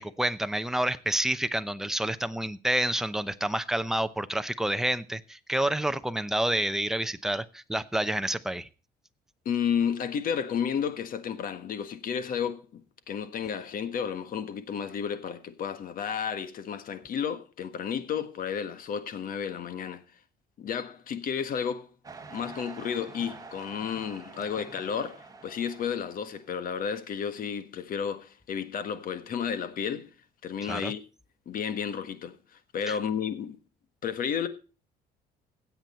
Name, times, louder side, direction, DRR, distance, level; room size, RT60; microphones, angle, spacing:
voice 1, 0.0-8.7 30.6-30.9 32.9-33.0, right 1 dB, 5° right, 0.7 m, -29 dB
voice 2, 9.4-12.8 13.1-20.0 20.6-21.9 22.3-30.1 30.4-31.0 31.4-32.4 32.7-33.6 34.0-34.5, left 7 dB, 55° left, 1.5 m, -32 dB
sound 1, 22.0-26.4, right 4 dB, 20° right, 1.7 m, -47 dB
16.0 x 7.9 x 4.3 m
cardioid pair, 110°, 17 cm